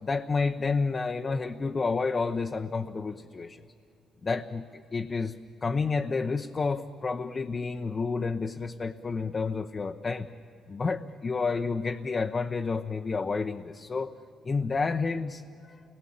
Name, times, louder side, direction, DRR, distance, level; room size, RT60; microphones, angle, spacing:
voice 1, 0.0-3.6 4.2-5.3 5.6-10.3 10.7-14.1 14.4-15.4 15.7-15.8, left 4 dB, 35° left, 4 dB, 0.9 m, -30 dB
29.0 x 20.5 x 8.7 m, 2.6 s
cardioid pair, 90°, 0 cm